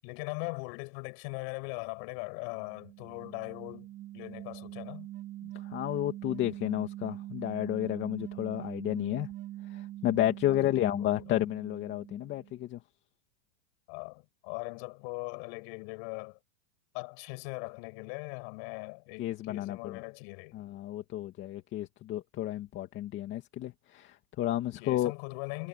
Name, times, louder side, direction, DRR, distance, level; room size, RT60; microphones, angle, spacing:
voice 1, 0.0-3.9 4.1-5.1 10.5-11.2 13.9-16.4 16.9-20.6 24.8-25.7, left 39 dB, 45° left, 7.8 m, -40 dB
sound 1, 2.4-12.6, right 14 dB, 30° right, 2.7 m, -43 dB
voice 2, 5.6-9.3 9.7-12.8 19.2-20.0 20.5-25.1, left 13 dB, 30° left, 2.3 m, -32 dB
supercardioid pair, 150°, 39 cm